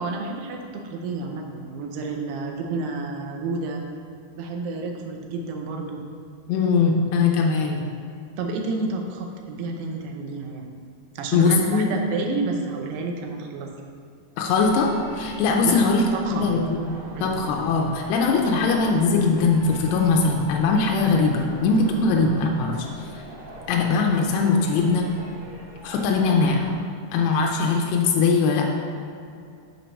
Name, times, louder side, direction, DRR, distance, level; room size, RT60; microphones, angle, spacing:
voice 1, 0.0-3.8 4.3-6.0 8.4-10.7 11.2-13.7 15.6-15.8 16.1-16.5 17.2-17.4, right 3 dB, 80° right, 2 dB, 2.8 m, -30 dB
voice 2, 6.5-7.8 11.3-11.9 14.4-16.9 17.2-22.9 23.7-25.1 25.8-26.7 27.1-28.7, left 4 dB, 85° left, 0 dB, 2.7 m, -21 dB
sound 1, 14.4-26.8, right 1 dB, 65° right, 3.0 m, -42 dB
6.6 x 4.5 x 5.2 m, 2.4 s
omnidirectional pair, 4.7 m